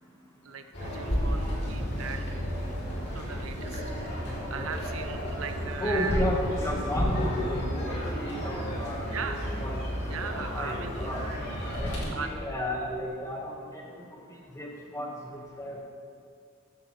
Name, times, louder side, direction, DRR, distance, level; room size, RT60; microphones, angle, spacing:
voice 1, 0.4-2.3 3.1-3.8 4.2-6.2 9.1-9.5 10.0-11.4 11.7-11.8 12.1-12.5, right 5 dB, 90° right, 8 dB, 0.7 m, -38 dB
sound 1, 0.7-12.1, equal, 55° left, 2.8 m, -32 dB
voice 2, 4.2-4.7 5.8-9.8 10.2-11.2 11.8-13.8 14.5-15.1 15.6-15.8, left 1 dB, 15° left, -2 dB, 1.6 m, -34 dB
13.5 x 9.1 x 3.3 m, 2.3 s
head